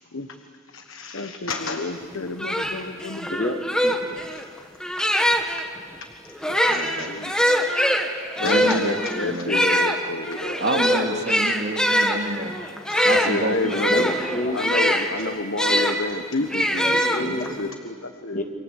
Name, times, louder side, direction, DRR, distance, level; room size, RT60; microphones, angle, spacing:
voice 1, 0.7-3.4 4.3-4.4 5.5-5.6 6.4-7.3 8.4-11.3 12.9-14.1 14.5-18.4, left 3 dB, 70° left, 6 dB, 1.4 m, -30 dB
sound 1, 2.0-2.1 2.4-5.6 6.3-16.0 16.5-17.6, equal, 5° left, 1.7 m, -23 dB
voice 2, 3.3-4.0 12.6-12.7 13.7-14.6 14.9-15.0 16.0-16.1 16.8-17.6 18.3-18.4, left 1 dB, 35° left, 4 dB, 2.2 m, -29 dB
voice 3, 6.7-7.1 8.4-9.6 10.6-12.6 13.0-14.1, right 2 dB, 50° right, 2 dB, 2.6 m, -28 dB
28.0 x 25.5 x 8.4 m, 2.1 s
head